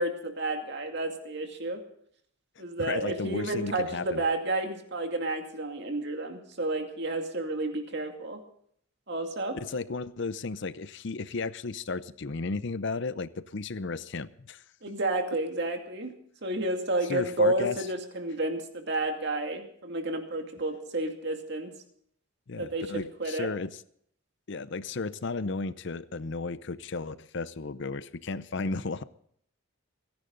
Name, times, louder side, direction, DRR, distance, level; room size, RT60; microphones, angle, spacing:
voice 1, 0.0-1.8 2.6-8.4 9.1-9.6 14.8-16.1 16.4-21.7 22.6-23.5, right 2 dB, 55° right, 4 dB, 2.4 m, -31 dB
voice 2, 2.8-4.2 9.5-14.6 17.1-17.8 22.5-23.7 24.5-29.0, left 3 dB, 60° left, 15 dB, 0.6 m, -34 dB
28.0 x 10.5 x 3.9 m, 0.65 s
head